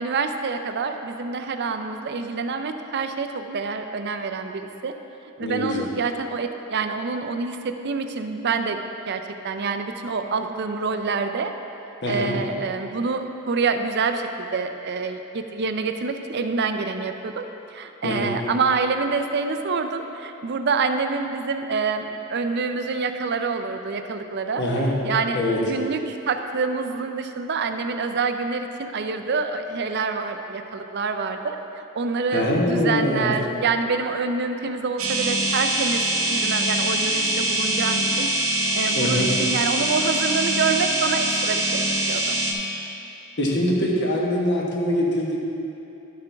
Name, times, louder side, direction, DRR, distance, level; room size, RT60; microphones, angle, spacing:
voice 1, 0.0-4.9 5.4-11.5 12.1-17.5 17.7-24.6 25.0-38.3 38.7-42.4, right 4 dB, 50° right, 7 dB, 0.5 m, -27 dB
voice 2, 5.4-5.9 12.0-12.4 18.0-18.3 24.6-24.9 25.3-25.6 32.3-33.3 38.9-39.3 43.4-45.4, left 1 dB, 50° left, -3 dB, 1.3 m, -23 dB
sound 1, 35.0-42.5, right 1 dB, 75° right, 1.1 m, -23 dB
11.5 x 6.8 x 3.4 m, 3.0 s
head